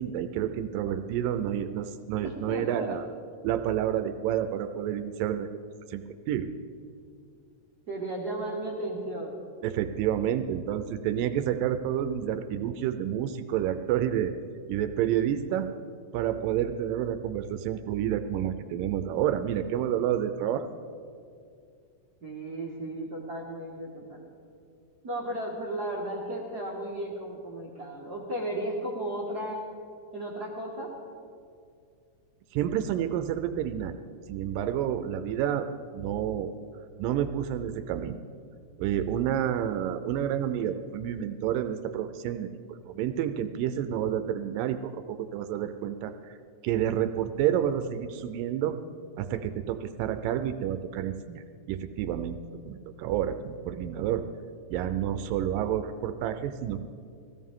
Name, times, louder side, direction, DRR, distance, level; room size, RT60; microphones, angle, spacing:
voice 1, 0.0-3.0 3.4-5.5 5.9-6.5 9.6-14.3 14.7-15.7 16.1-20.7 32.5-34.0 34.3-35.7 35.9-36.5 37.0-38.2 38.8-44.8 45.1-46.4 46.6-48.8 49.2-52.4 52.7-54.2 54.7-56.8, right 10 dB, 85° right, 9 dB, 2.3 m, -29 dB
voice 2, 2.2-3.0 7.9-9.4 22.2-24.3 25.0-29.6 30.1-30.9, right 1 dB, 40° right, -4 dB, 1.6 m, -34 dB
19.0 x 15.5 x 3.7 m, 2.3 s
omnidirectional pair, 3.9 m